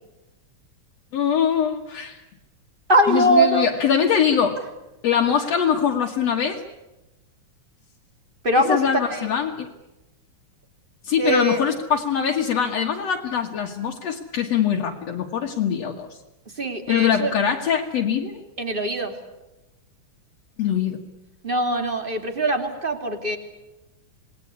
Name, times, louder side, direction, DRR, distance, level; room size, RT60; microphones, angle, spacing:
voice 1, 1.1-2.2 3.1-4.6 5.0-6.6 8.6-9.7 11.0-16.1 16.9-18.3 20.6-21.0, left 8 dB, 60° left, 0 dB, 2.6 m, -22 dB
voice 2, 2.9-3.7 8.4-9.3 11.2-11.6 16.6-17.3 18.6-19.1 21.4-23.4, right 1 dB, 20° right, 6 dB, 2.7 m, -21 dB
27.5 x 20.0 x 9.8 m, 1.0 s
omnidirectional pair, 3.4 m